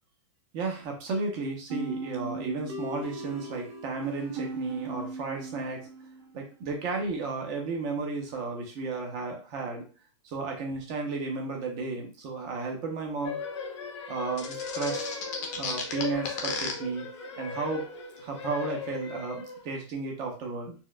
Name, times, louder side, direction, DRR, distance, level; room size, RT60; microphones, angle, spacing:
voice 1, 0.5-5.9 6.3-9.8 10.2-13.4 14.1-17.0 17.4-17.9 18.2-20.7, right 4 dB, 25° right, 1 dB, 0.7 m, -33 dB
sound 1, 1.7-6.4, right 2 dB, 80° right, 1.1 m, -38 dB
sound 2, 13.2-19.8, left 4 dB, 75° left, 0.8 m, -38 dB
sound 3, 14.4-16.7, left 5 dB, 35° left, 0.7 m, -33 dB
4.4 x 2.3 x 2.2 m, 0.34 s
supercardioid pair, 170°, 15 cm